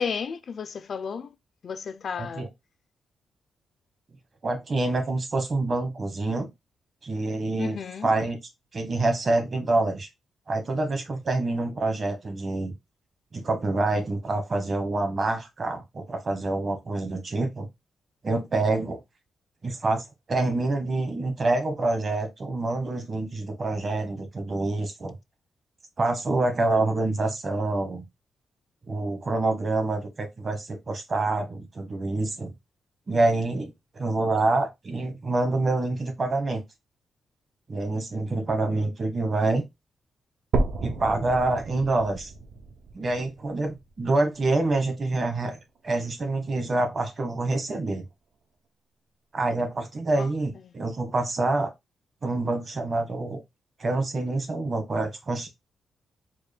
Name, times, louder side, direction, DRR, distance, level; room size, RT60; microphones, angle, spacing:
voice 1, 0.0-1.3 1.6-2.5 7.6-8.2 50.1-50.3 50.6-50.7, left 6 dB, 50° left, 0.4 m, -33 dB
voice 2, 2.2-2.5 4.4-6.5 7.0-7.8 8.0-8.4 8.7-10.1 10.5-12.7 13.3-17.7 18.2-19.0 19.6-25.1 26.0-28.0 28.9-32.5 33.1-36.6 37.7-39.6 40.8-42.3 42.9-45.6 45.8-48.0 49.3-51.7 52.2-53.4 53.8-55.5, right 2 dB, 35° right, 1.0 m, -26 dB
sound 1, 40.5-44.5 45.1-45.2 45.8-45.9 46.2-46.3 47.1-47.2, right 3 dB, 60° right, 0.6 m, -32 dB
4.5 x 2.2 x 3.3 m
wide cardioid pair, 145°, 0 cm